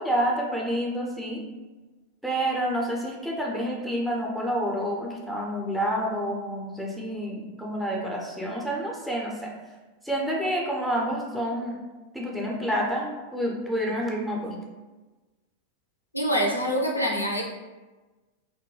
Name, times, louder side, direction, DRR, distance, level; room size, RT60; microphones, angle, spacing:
voice 1, 0.0-1.4 2.2-9.5 10.0-11.8 12.1-14.6, equal, 5° right, -2 dB, 0.5 m, -28 dB
voice 2, 16.1-17.4, equal, 85° left, 0 dB, 0.4 m, -25 dB
2.2 x 2.2 x 3.0 m, 1.2 s
figure-of-eight pair, 90°, 0 cm